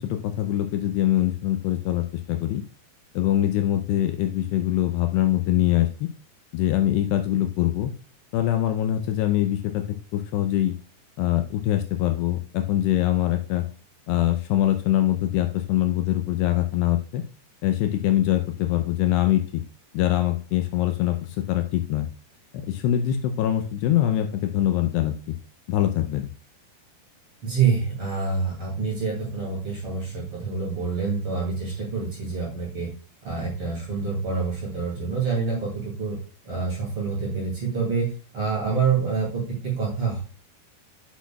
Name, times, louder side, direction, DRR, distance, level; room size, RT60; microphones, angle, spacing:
voice 1, 0.0-2.6 3.1-6.1 6.5-7.9 8.3-9.8 10.1-10.7 11.2-13.7 14.1-17.2 17.6-19.6 19.9-22.1 22.5-25.4 25.7-26.3, left 13 dB, 80° left, 7 dB, 2.6 m, -23 dB
voice 2, 27.4-32.9 33.2-36.2 36.4-40.2, right 5 dB, 35° right, -4 dB, 2.9 m, -27 dB
8.3 x 6.0 x 2.3 m, 0.37 s
omnidirectional pair, 5.1 m